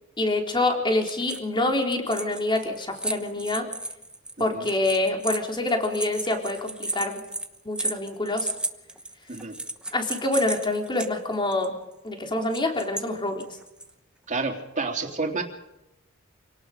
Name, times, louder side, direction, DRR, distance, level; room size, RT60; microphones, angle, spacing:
voice 1, 0.2-3.7 4.4-7.2 7.7-8.5 9.9-11.7 12.0-13.5, left 2 dB, 25° left, 3 dB, 3.7 m, -26 dB
sound 1, 1.0-1.5 1.8-11.1 11.5-11.7 12.4-13.0 13.4-13.9, right 2 dB, 5° right, 1.1 m, -34 dB
voice 2, 4.4-4.7 9.3-9.5 14.3-15.4, right 3 dB, 35° right, 2 dB, 3.5 m, -29 dB
27.0 x 18.5 x 5.2 m, 0.90 s
head